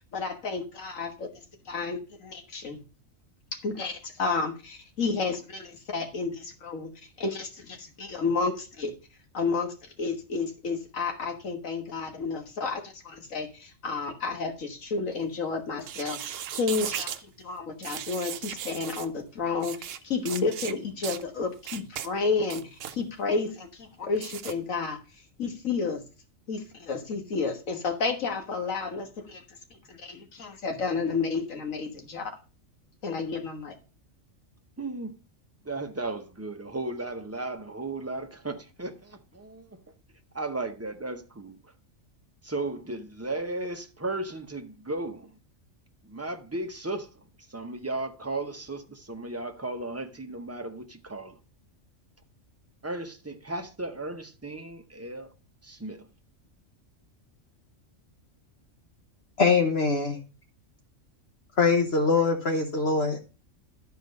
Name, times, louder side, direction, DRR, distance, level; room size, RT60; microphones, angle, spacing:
voice 1, 0.1-1.3 1.7-2.8 3.5-6.9 7.2-8.9 9.3-9.7 10.0-17.1 17.4-25.0 25.4-26.0 26.5-29.4 29.9-32.3 33.0-33.7, left 4 dB, 85° left, 1.9 m, -31 dB
sound 1, 15.8-17.2 17.8-19.1 19.6-20.0 20.3-20.7 21.0-21.2 21.6-22.1 22.4-23.0 24.2-24.5, right 10 dB, 75° right, 1.0 m, -36 dB
voice 2, 34.8-35.2 35.6-39.8 40.3-41.6 42.4-45.3 46.0-47.1 47.5-51.4 52.8-55.3 55.6-56.1, right 2 dB, 15° right, 0.7 m, -35 dB
voice 3, 59.4-60.2 61.6-63.2, left 4 dB, 55° left, 1.2 m, -23 dB
11.5 x 4.7 x 5.2 m
omnidirectional pair, 1.3 m